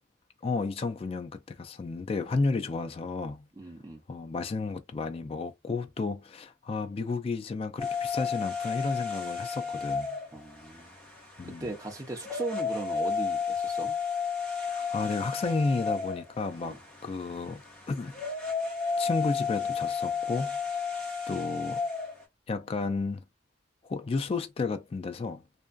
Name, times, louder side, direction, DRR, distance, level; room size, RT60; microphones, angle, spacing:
voice 1, 0.4-3.5 4.1-10.2 11.4-11.7 14.7-18.2 19.0-20.6 21.3-21.8 22.5-23.2 23.9-25.4, left 3 dB, 30° left, 0.3 m, -32 dB
voice 2, 3.6-4.0 10.3-10.9 11.4-14.0 16.6-16.8, right 2 dB, 20° right, 0.7 m, -38 dB
sound 1, 7.8-22.2, left 5 dB, 5° left, 0.9 m, -33 dB
2.6 x 2.3 x 2.2 m
head